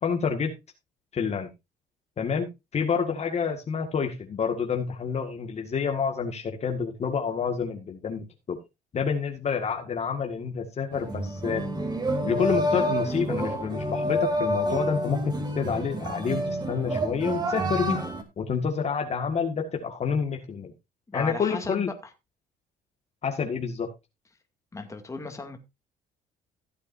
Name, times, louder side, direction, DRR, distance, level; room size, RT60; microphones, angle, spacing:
voice 1, 0.0-0.5 1.1-1.5 2.2-8.6 8.9-11.6 12.3-18.0 18.4-20.7 21.1-21.9 23.2-23.9, left 6 dB, 40° left, 3 dB, 1.9 m, -28 dB
sound 1, 10.9-18.2, equal, 25° right, 2.8 m, -28 dB
voice 2, 21.1-21.9 24.7-25.6, left 3 dB, 20° left, 5 dB, 2.4 m, -35 dB
16.0 x 8.3 x 2.7 m, 0.24 s
cardioid pair, 110°, 17 cm